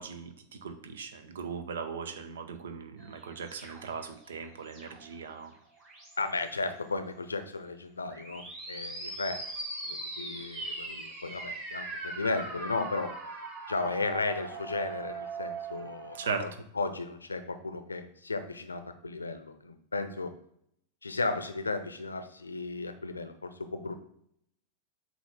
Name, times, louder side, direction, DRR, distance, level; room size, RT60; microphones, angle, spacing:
voice 1, 0.0-5.5 16.1-16.4, right 5 dB, 65° right, 9 dB, 0.7 m, -38 dB
sound 1, 3.0-5.2 5.8-6.4 8.0-16.3, right 3 dB, 25° right, 2.8 m, -41 dB
voice 2, 6.2-9.4 9.8-13.1 13.7-16.5 16.8-20.3 21.0-23.9, left 3 dB, 80° left, 9 dB, 0.6 m, -35 dB
7.8 x 2.8 x 5.9 m, 0.71 s
figure-of-eight pair, 90°, 0 cm